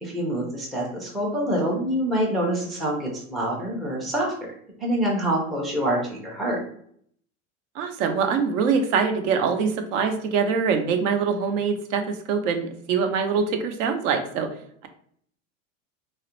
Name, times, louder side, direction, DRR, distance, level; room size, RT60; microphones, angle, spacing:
voice 1, 0.0-4.3 4.8-6.6, right 1 dB, ahead, -3 dB, 0.3 m, -26 dB
voice 2, 7.8-14.5, right 6 dB, 70° right, 6 dB, 0.6 m, -24 dB
2.3 x 2.0 x 2.9 m, 0.63 s
supercardioid pair, 115°, 40 cm